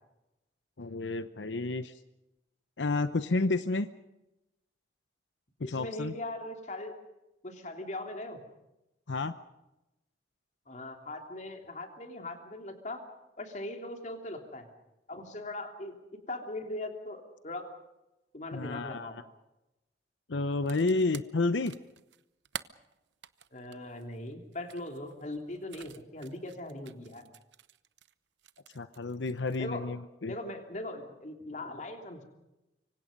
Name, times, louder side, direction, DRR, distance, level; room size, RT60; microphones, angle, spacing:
voice 1, 0.8-1.9 2.8-3.9 5.6-6.1 9.1-9.3 18.5-19.1 20.3-21.8 28.7-30.3, left 3 dB, 90° left, 11 dB, 0.8 m, -30 dB
voice 2, 5.6-6.9 7.4-8.4 10.7-13.0 13.4-14.7 15.1-15.9 16.3-17.7 18.3-19.2 23.5-27.3 29.6-29.9 30.2-32.2, left 1 dB, 40° left, 4 dB, 3.2 m, -40 dB
sound 1, 20.5-28.1 28.4-29.6, right 9 dB, 80° right, 0.9 m, -48 dB
25.5 x 25.0 x 5.3 m, 0.96 s
head